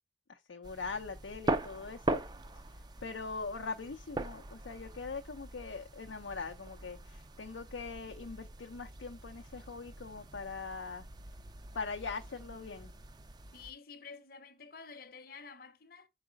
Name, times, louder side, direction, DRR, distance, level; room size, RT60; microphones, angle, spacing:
voice 1, 0.3-2.2 3.0-11.0 11.7-12.9, left 4 dB, 85° left, 0.6 m, -42 dB
sound 1, 0.6-13.7, right 2 dB, 20° right, 0.4 m, -41 dB
voice 2, 13.5-16.1, left 5 dB, 50° left, 0.8 m, -50 dB
4.8 x 4.8 x 5.1 m
head